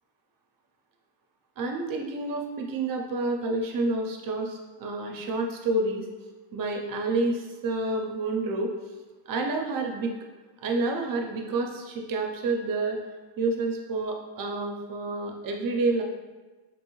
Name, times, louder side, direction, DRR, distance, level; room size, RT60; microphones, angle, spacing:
voice 1, 1.6-6.0 6.5-8.7 9.3-10.1 10.6-13.0 13.4-16.0, right 2 dB, 45° right, 2 dB, 0.6 m, -29 dB
3.0 x 2.6 x 3.0 m, 1.3 s
cardioid pair, 120°, 50 cm